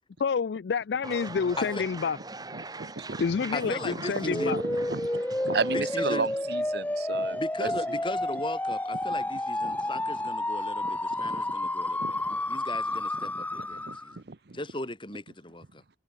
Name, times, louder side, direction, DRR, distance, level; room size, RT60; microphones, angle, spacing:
voice 1, 0.2-2.2 3.2-4.6, left 5 dB, 70° left, 0.4 m, -28 dB
sound 1, 1.0-6.4, right 2 dB, 20° right, 6.2 m, -42 dB
voice 2, 2.5-3.2 3.9-8.0 9.6-9.9 11.1-11.5 12.0-12.4 13.2-14.6, right 4 dB, 60° right, 0.8 m, -35 dB
voice 3, 3.5-4.6 5.7-6.3 7.4-14.1 14.5-15.8, left 2 dB, 25° left, 6.1 m, -37 dB
sound 2, 4.3-14.2, left 1 dB, 10° left, 0.7 m, -30 dB
head